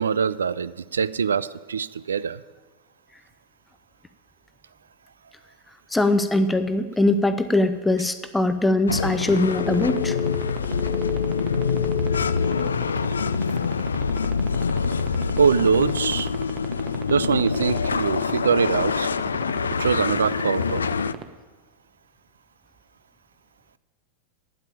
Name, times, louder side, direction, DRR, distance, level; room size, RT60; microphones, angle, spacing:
voice 1, 0.0-2.4 15.4-16.3 17.1-19.1 19.8-20.8, right 6 dB, 70° right, 18 dB, 0.3 m, -23 dB
voice 2, 5.9-10.2, left 2 dB, 5° left, 11 dB, 0.6 m, -21 dB
sound 1, 8.9-21.1, left 5 dB, 70° left, 0.3 m, -25 dB
sound 2, 8.9-21.2, right 11 dB, 35° right, 1.0 m, -33 dB
sound 3, 9.2-13.4, left 11 dB, 40° left, 1.0 m, -32 dB
8.9 x 8.9 x 8.7 m, 1.3 s
figure-of-eight pair, 90°, 0 cm